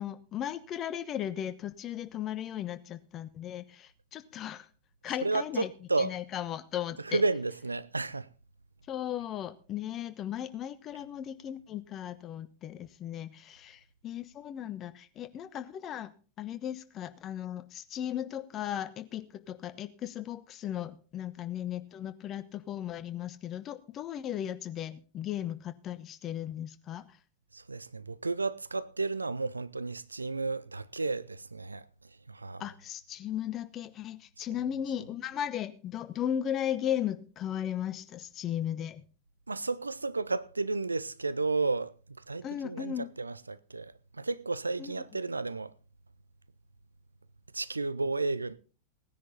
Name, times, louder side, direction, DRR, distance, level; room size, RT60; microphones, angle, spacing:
voice 1, 0.0-4.7 5.0-5.7 6.0-7.2 8.9-16.1 16.4-27.2 32.6-39.0 42.4-43.1 44.8-44.9, left 10 dB, 30° left, 1.1 m, -36 dB
voice 2, 5.2-6.1 7.0-8.3 27.5-31.9 32.3-32.6 34.4-34.5 39.5-45.7 47.5-48.6, right 3 dB, 80° right, 0.5 m, -32 dB
18.0 x 10.0 x 4.1 m
figure-of-eight pair, 90°, 0 cm